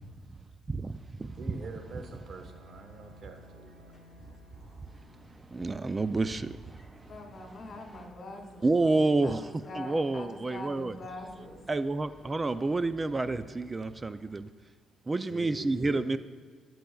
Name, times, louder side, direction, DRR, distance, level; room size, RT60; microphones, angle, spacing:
voice 1, 0.7-1.3 5.5-7.1 8.6-9.4 9.7-11.0 11.7-14.5 15.1-16.2, right 2 dB, 25° right, 0.4 m, -29 dB
Bowed string instrument, 1.2-5.5, left 1 dB, 85° right, 3.4 m, -57 dB
voice 2, 1.4-3.9 15.3-16.2, right 3 dB, 55° right, 1.2 m, -45 dB
sound 1, 2.4-14.4, right 1 dB, 5° right, 1.5 m, -56 dB
voice 3, 7.0-8.9 9.2-11.6, left 2 dB, 45° left, 2.2 m, -43 dB
20.0 x 7.7 x 2.3 m
cardioid pair, 90°, 0 cm